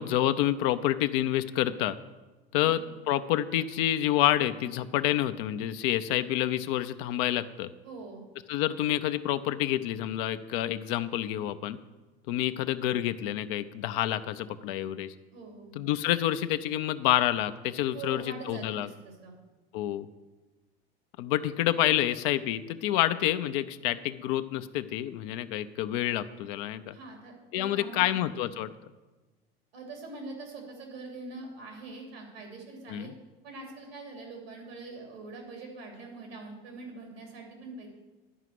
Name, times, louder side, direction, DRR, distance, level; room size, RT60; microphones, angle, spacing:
voice 1, 0.0-2.0 2.5-7.7 8.5-11.8 12.3-15.1 15.8-18.9 19.7-20.1 21.2-26.9 27.5-28.7 32.9-33.1, left 13 dB, 65° left, 11 dB, 0.6 m, -28 dB
voice 2, 7.8-8.2 15.3-15.7 17.9-19.3 26.9-28.2 29.7-33.1 33.4-37.9, right 3 dB, 85° right, 1 dB, 3.1 m, -43 dB
11.0 x 4.9 x 7.6 m, 1.2 s
hypercardioid pair, 75°, 30 cm